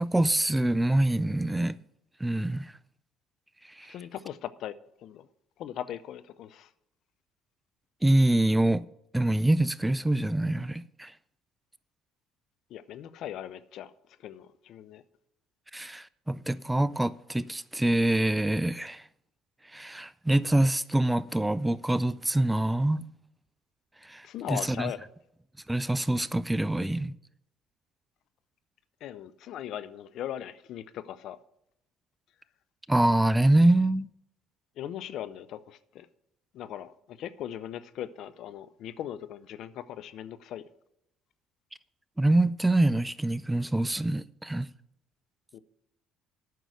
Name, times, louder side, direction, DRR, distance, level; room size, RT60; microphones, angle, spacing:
voice 1, 0.0-1.8 2.2-2.7 3.8-3.9 8.0-8.8 9.1-11.1 15.7-19.0 19.7-23.0 24.0-24.9 25.7-27.1 32.9-34.1 42.2-44.7, right 1 dB, 10° right, 0.4 m, -25 dB
voice 2, 3.9-4.7 5.0-5.3 5.6-6.7 12.7-13.9 14.2-15.0 24.2-25.0 29.0-31.4 34.8-36.1 36.5-40.6 45.5-45.6, left 11 dB, 65° left, 0.5 m, -39 dB
9.2 x 6.2 x 7.9 m
supercardioid pair, 70°, 0 cm